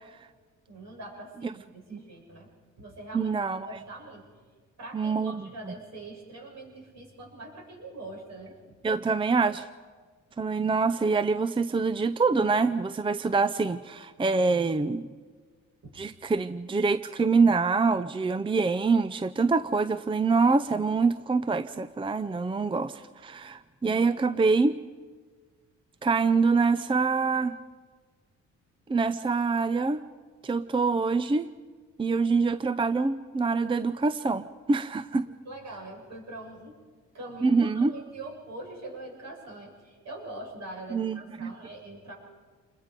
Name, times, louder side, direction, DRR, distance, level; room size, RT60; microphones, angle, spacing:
voice 1, 0.7-2.5 2.8-3.3 3.6-4.3 4.8-8.5 15.8-15.9 23.8-24.0 35.5-36.8 37.1-42.1, right 2 dB, 60° right, -1 dB, 7.0 m, -43 dB
voice 2, 3.1-3.8 4.9-5.7 8.8-9.7 10.4-15.1 15.9-24.8 26.0-27.6 28.9-30.0 30.4-31.5 32.0-35.2 37.4-37.9 40.9-41.5, right 4 dB, 15° right, 13 dB, 0.6 m, -25 dB
27.5 x 21.5 x 5.2 m, 1.5 s
cardioid pair, 90°, 30 cm